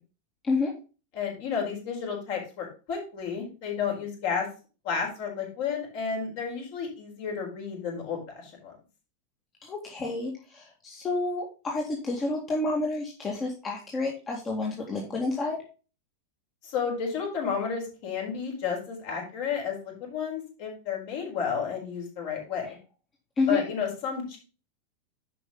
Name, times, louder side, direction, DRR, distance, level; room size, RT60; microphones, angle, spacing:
voice 1, 1.1-4.5 4.8-8.7 16.6-22.7 23.5-24.4, left 6 dB, 50° left, 0 dB, 4.4 m, -32 dB
voice 2, 9.6-15.6 23.4-23.6, left 3 dB, 25° left, -1 dB, 2.0 m, -29 dB
10.5 x 5.5 x 3.8 m, 0.33 s
figure-of-eight pair, 90°, 0 cm